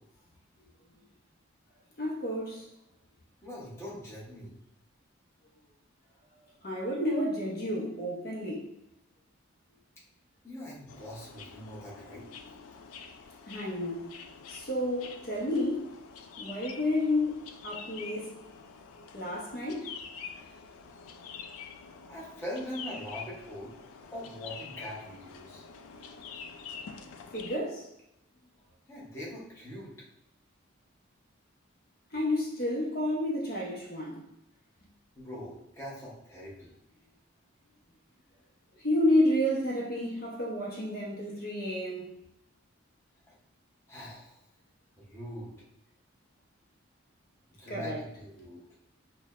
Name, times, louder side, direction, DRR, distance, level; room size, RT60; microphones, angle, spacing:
voice 1, 2.0-2.7 6.6-8.7 13.5-14.1 14.5-15.9 16.4-18.3 19.1-19.9 27.3-27.9 32.1-34.2 38.7-42.1 47.7-48.0, left 1 dB, 45° left, 0.6 m, -30 dB
voice 2, 3.4-4.5 10.4-12.3 20.3-20.6 22.1-23.8 24.1-25.6 28.9-29.9 35.2-36.7 43.3-43.4 43.9-44.4 45.0-45.5 47.6-48.6, equal, 10° left, 0.8 m, -42 dB
sound 1, 10.9-27.6, left 5 dB, 90° left, 0.4 m, -46 dB
6.0 x 2.1 x 2.4 m
head